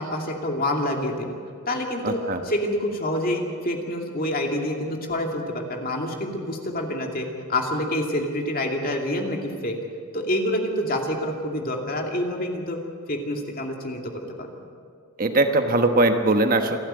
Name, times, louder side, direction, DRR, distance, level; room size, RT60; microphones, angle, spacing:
voice 1, 0.0-1.3 1.7-9.8 10.1-12.8 13.1-14.1 14.4-14.5, left 1 dB, 40° left, 1 dB, 2.6 m, -27 dB
voice 2, 2.0-2.4 15.2-16.8, right 2 dB, 40° right, 6 dB, 1.2 m, -20 dB
28.0 x 11.5 x 8.9 m, 2.2 s
head